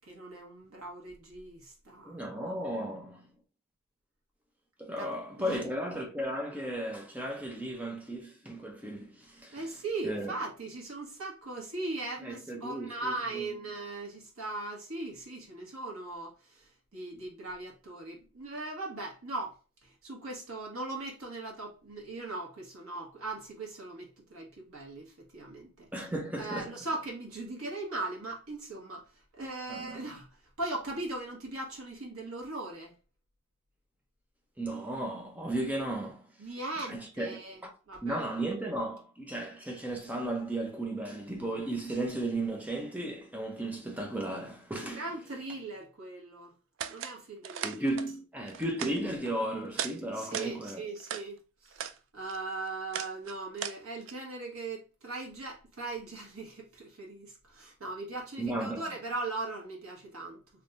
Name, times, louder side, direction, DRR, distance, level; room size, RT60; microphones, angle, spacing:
voice 1, 0.1-2.3 5.0-5.1 5.4-5.6 9.5-19.5 19.8-25.9 26.3-29.1 29.3-30.3 30.6-32.9 36.4-37.6 37.9-38.2 44.9-46.5 46.9-47.8 50.1-60.4, right 2 dB, 80° right, 1.5 m, -39 dB
voice 2, 2.0-3.3 4.8-9.6 10.0-10.4 12.2-13.4 25.9-26.7 29.7-30.0 34.6-36.3 36.9-37.7 38.0-45.0 47.6-50.9 58.4-58.8, right 1 dB, 5° right, 0.6 m, -35 dB
sound 1, 46.8-47.2 47.4-48.1 48.5-49.3 49.7-50.0 50.2-51.3 51.7-52.0 52.3-54.1, right 8 dB, 60° right, 0.3 m, -38 dB
3.5 x 3.1 x 2.5 m
head